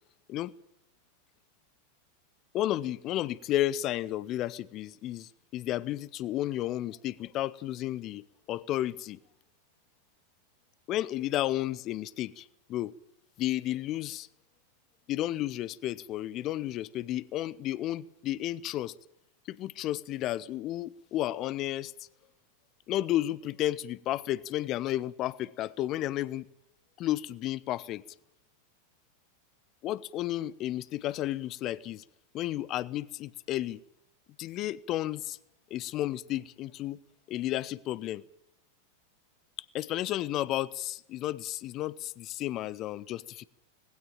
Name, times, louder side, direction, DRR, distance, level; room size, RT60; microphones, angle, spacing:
voice 1, 2.5-8.2 8.5-9.2 10.9-12.9 13.4-14.3 15.1-18.9 19.5-22.1 22.9-26.5 27.0-28.0 29.8-32.0 32.3-33.8 34.4-35.4 35.7-37.0 37.3-38.2 39.7-43.5, left 14 dB, 35° left, 0.8 m, -32 dB
19.5 x 17.0 x 8.8 m
figure-of-eight pair, 90°, 0 cm